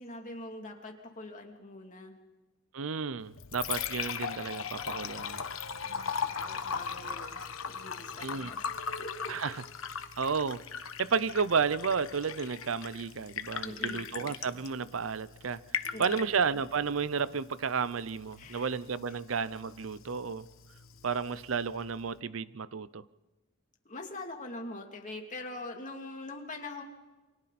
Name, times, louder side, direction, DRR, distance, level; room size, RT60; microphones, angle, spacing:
voice 1, 0.0-2.2 5.8-9.4 13.6-14.1 15.9-16.3 18.4-18.7 23.8-26.8, left 2 dB, 40° left, 2.8 m, -44 dB
voice 2, 2.7-5.4 8.2-8.5 9.3-9.5 10.2-10.6 11.0-15.6 16.0-20.5 21.0-23.0, right 5 dB, 75° right, 0.7 m, -32 dB
Liquid, 3.2-22.2, left 6 dB, 90° left, 1.2 m, -39 dB
28.5 x 24.5 x 4.2 m
head